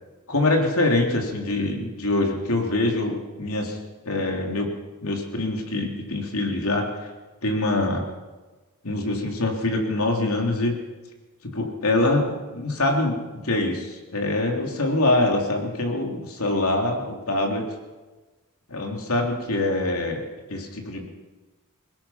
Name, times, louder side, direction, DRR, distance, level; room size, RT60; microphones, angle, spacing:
voice 1, 0.3-3.8 4.0-4.7 5.0-6.9 7.4-8.0 8.8-10.8 11.5-13.2 13.4-17.7 18.7-21.0, left 2 dB, 75° left, 2 dB, 3.4 m, -24 dB
23.5 x 20.0 x 5.9 m, 1.2 s
head